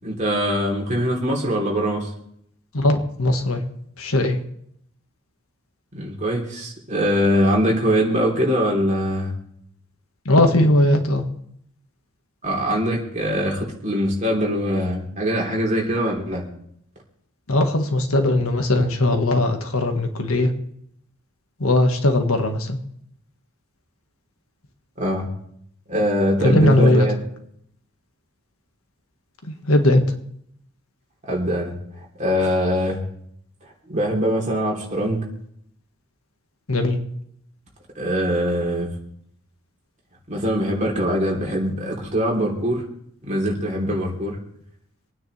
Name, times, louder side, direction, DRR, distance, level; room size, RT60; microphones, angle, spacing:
voice 1, 0.0-2.1 5.9-9.3 12.4-16.5 25.0-25.3 25.9-27.2 31.2-33.0 33.9-35.2 37.9-38.9 40.3-42.8 43.2-44.4, equal, 35° right, -2 dB, 3.3 m, -22 dB
voice 2, 2.7-3.6 4.0-4.4 10.2-11.2 17.5-20.5 21.6-22.8 26.4-27.1 29.4-30.0 36.7-37.0, left 1 dB, 80° left, 5 dB, 1.7 m, -19 dB
26.0 x 9.5 x 3.4 m, 0.71 s
head